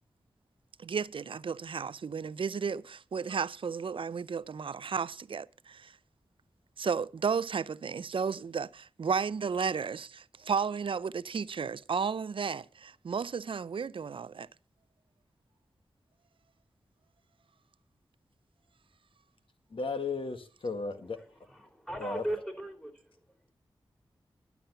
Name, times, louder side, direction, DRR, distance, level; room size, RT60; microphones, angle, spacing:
voice 1, 0.8-5.9 6.8-14.5, right 6 dB, 65° right, 0.5 m, -33 dB
voice 2, 19.7-21.2 22.0-22.2, left 3 dB, 70° left, 1.7 m, -34 dB
voice 3, 21.0-23.4, right 1 dB, 5° left, 3.7 m, -39 dB
11.5 x 7.1 x 6.7 m
cardioid pair, 50°, 9 cm